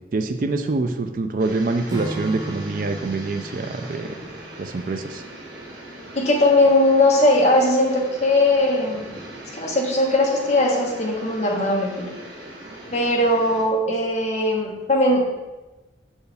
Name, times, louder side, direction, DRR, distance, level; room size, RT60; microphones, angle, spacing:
voice 1, 0.1-4.1 4.6-5.2, right 3 dB, 50° right, 7 dB, 0.4 m, -25 dB
sound 1, 1.4-13.6, right 1 dB, 70° right, 1.6 m, -40 dB
Acoustic guitar / Strum, 1.9-5.4, equal, 20° right, 0.7 m, -36 dB
voice 2, 6.1-9.1 9.5-12.1 12.9-15.2, left 1 dB, 40° left, -2 dB, 1.2 m, -19 dB
6.8 x 4.5 x 3.4 m, 1.1 s
head